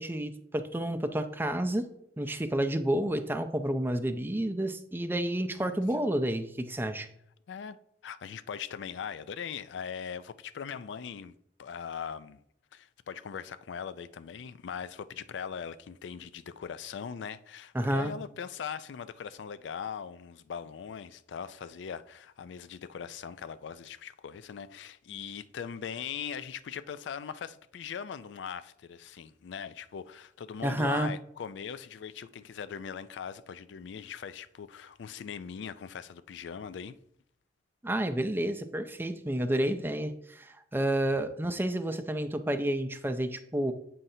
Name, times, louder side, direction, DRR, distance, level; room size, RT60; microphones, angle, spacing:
voice 1, 0.0-1.9 2.2-7.1 17.7-18.1 30.6-31.1 37.8-43.7, right 1 dB, 10° right, 0.4 m, -30 dB
voice 2, 7.5-7.8 8.0-11.3 11.6-12.4 12.7-37.0 41.2-41.3, left 7 dB, 80° left, 0.4 m, -40 dB
7.6 x 5.6 x 2.7 m
head